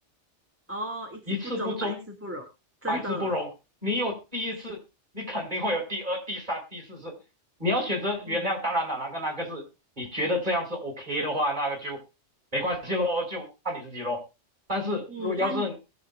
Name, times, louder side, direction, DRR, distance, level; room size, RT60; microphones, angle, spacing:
voice 1, 0.7-2.5 2.8-3.4 8.3-8.5 15.1-15.6, equal, 10° right, 1 dB, 2.3 m, -35 dB
voice 2, 1.3-2.0 2.9-3.5 3.8-4.8 5.1-7.2 7.6-9.6 10.0-12.0 12.5-14.2 14.7-15.7, left 1 dB, 40° right, 0 dB, 6.0 m, -29 dB
21.5 x 7.6 x 2.4 m, 0.28 s
omnidirectional pair, 1.2 m